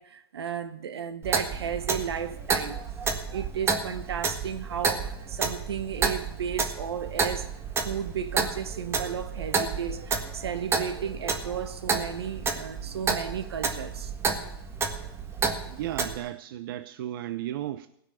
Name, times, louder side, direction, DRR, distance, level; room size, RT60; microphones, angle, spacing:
voice 1, 0.0-2.8 3.3-7.5 7.8-14.1, right 8 dB, 85° right, 1.5 m, -34 dB
Clock, 1.2-16.2, right 5 dB, 20° right, 1.6 m, -30 dB
voice 2, 15.7-17.9, right 12 dB, 60° right, 0.8 m, -34 dB
16.0 x 6.5 x 9.0 m
hypercardioid pair, 130°, 13 cm